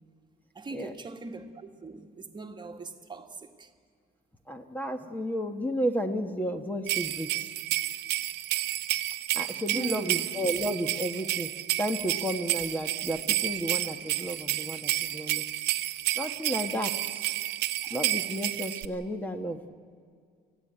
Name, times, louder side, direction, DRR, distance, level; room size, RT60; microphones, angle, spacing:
voice 1, 0.5-3.7 9.7-10.2 17.8-17.9, right 3 dB, 25° right, 1.8 m, -41 dB
voice 2, 4.5-7.5 9.3-11.5 11.8-15.5 16.1-17.2 17.9-19.6, equal, 10° left, 1.4 m, -32 dB
sound 1, 6.9-18.9, right 16 dB, 80° right, 1.0 m, -31 dB
25.0 x 16.0 x 9.1 m
cardioid pair, 110°, 17 cm